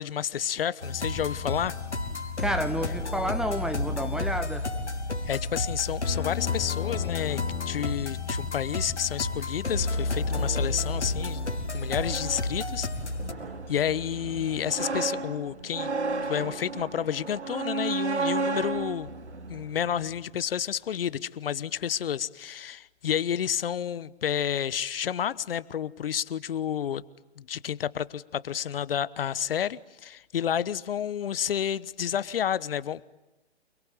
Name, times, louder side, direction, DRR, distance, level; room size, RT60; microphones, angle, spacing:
voice 1, 0.0-1.7 5.3-7.4 7.7-11.4 11.7-12.9 13.7-15.9 16.2-19.1 19.5-27.0 27.4-33.0, left 9 dB, 55° left, 1.1 m, -30 dB
sound 1, 0.8-13.3, left 3 dB, 85° left, 4.0 m, -31 dB
voice 2, 2.4-4.7, equal, ahead, 0.9 m, -30 dB
sound 2, 10.2-20.2, right 3 dB, 75° right, 3.0 m, -34 dB
29.0 x 22.0 x 9.3 m
figure-of-eight pair, 130°, 34 cm